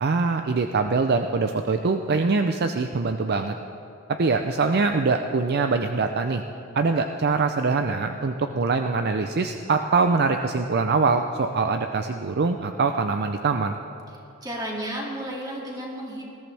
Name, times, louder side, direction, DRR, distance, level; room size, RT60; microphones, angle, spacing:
voice 1, 0.0-3.5 4.2-6.4 6.7-13.8, right 4 dB, 50° right, 6 dB, 0.5 m, -23 dB
voice 2, 14.4-16.2, right 1 dB, 20° right, -2 dB, 2.4 m, -32 dB
20.0 x 14.0 x 3.4 m, 2.8 s
head